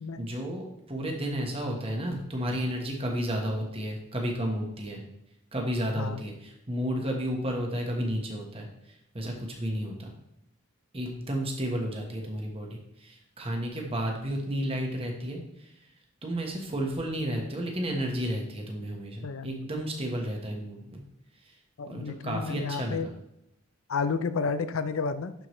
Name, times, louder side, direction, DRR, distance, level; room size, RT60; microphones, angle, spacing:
voice 1, 0.2-5.0 5.5-10.1 10.9-15.7 16.2-21.0 21.4-21.5 21.9-23.1, equal, 30° right, 1 dB, 1.4 m, -32 dB
voice 2, 19.2-19.6 21.8-23.1 23.9-25.3, left 5 dB, 75° left, 12 dB, 0.5 m, -31 dB
11.0 x 5.0 x 3.2 m, 0.81 s
head